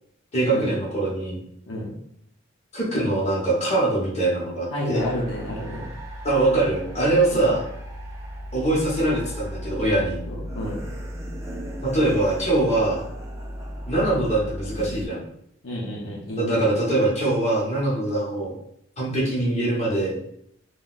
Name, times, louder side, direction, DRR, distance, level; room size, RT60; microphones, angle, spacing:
voice 1, 0.3-1.4 2.7-5.0 6.2-7.6 8.5-10.2 11.8-13.0 13.9-15.2 16.4-18.6 19.0-20.2, right 2 dB, 30° left, -6 dB, 1.0 m, -23 dB
voice 2, 4.7-5.9 7.3-7.5 10.3-10.9 15.6-16.7, equal, 70° left, -5 dB, 0.7 m, -30 dB
sound 1, 4.9-15.1, equal, 15° right, 0.4 m, -36 dB
3.8 x 2.3 x 2.4 m, 0.70 s
head